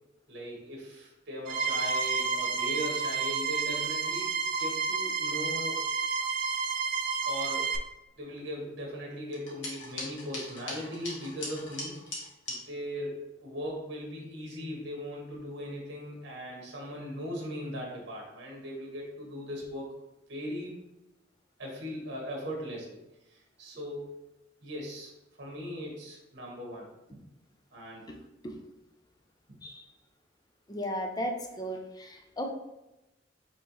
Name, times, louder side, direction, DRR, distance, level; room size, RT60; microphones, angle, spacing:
voice 1, 0.3-5.8 7.2-7.8 8.2-19.9 20.3-20.8 21.6-22.9 23.3-24.1 24.6-25.1 25.4-27.2 27.7-28.1 29.5-29.6, equal, 65° right, -1 dB, 1.3 m, -39 dB
sound 1, 1.5-7.8, right 5 dB, 45° right, 0.4 m, -30 dB
sound 2, 9.3-12.6, left 2 dB, 80° left, 1.3 m, -40 dB
voice 2, 30.7-32.5, equal, 20° left, 4 dB, 0.5 m, -35 dB
5.3 x 3.1 x 3.0 m, 0.94 s
head